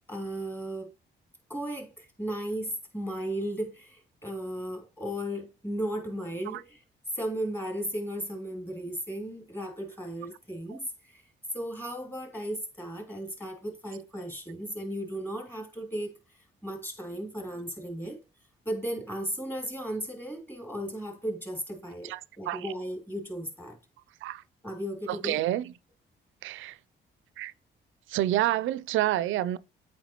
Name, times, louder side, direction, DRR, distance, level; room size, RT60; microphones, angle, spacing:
voice 1, 0.1-0.9 1.5-6.8 7.1-11.2 11.5-16.2 16.6-18.2 18.7-23.8 24.6-25.5, right 1 dB, 10° left, 2.5 m, -35 dB
voice 2, 25.1-25.6 26.4-26.7 27.4-27.5 28.1-29.6, right 13 dB, 80° right, 0.4 m, -28 dB
8.1 x 4.4 x 2.9 m
cardioid pair, 90°, 20 cm